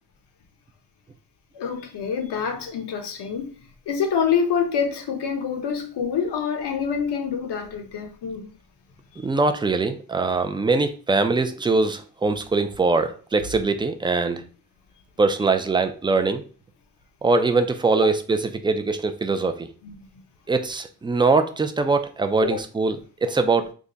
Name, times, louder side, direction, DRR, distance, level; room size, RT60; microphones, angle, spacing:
voice 1, 1.5-3.6 3.9-8.5 18.0-18.1 19.8-19.9 22.4-22.6, left 6 dB, 70° left, 0.9 m, -26 dB
voice 2, 9.2-14.4 15.2-16.4 17.2-19.7 20.5-23.7, right 3 dB, 15° right, 0.3 m, -22 dB
3.6 x 2.1 x 3.9 m
cardioid pair, 95°, 43 cm